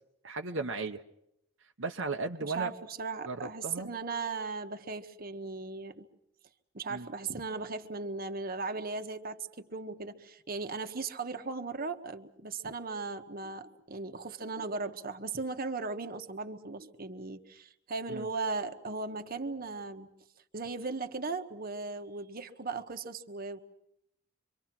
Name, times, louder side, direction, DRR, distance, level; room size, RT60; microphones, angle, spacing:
voice 1, 0.2-1.0 1.8-2.7 3.2-3.9 6.9-7.1 18.1-18.3, right 3 dB, 75° right, 3 dB, 1.2 m, -35 dB
voice 2, 2.4-6.1 6.7-20.1 20.5-23.6, right 4 dB, 50° right, 6 dB, 1.4 m, -37 dB
27.0 x 24.5 x 6.1 m, 0.80 s
head